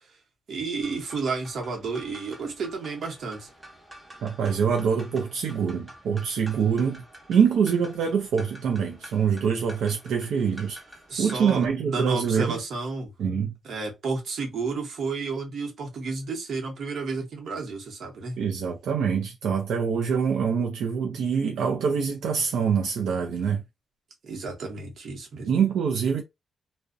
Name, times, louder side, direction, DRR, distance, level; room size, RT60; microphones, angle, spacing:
voice 1, 0.5-3.5 11.1-13.1 13.6-18.3 24.2-25.5, right 4 dB, 55° right, 0.8 m, -31 dB
sound 1, 0.8-11.7, equal, 10° right, 0.6 m, -48 dB
voice 2, 4.2-7.0 7.3-10.8 11.2-12.6 13.2-13.5 18.4-23.6 25.5-26.2, right 6 dB, 80° right, 0.4 m, -25 dB
2.5 x 2.0 x 2.4 m
wide cardioid pair, 165°, 0 cm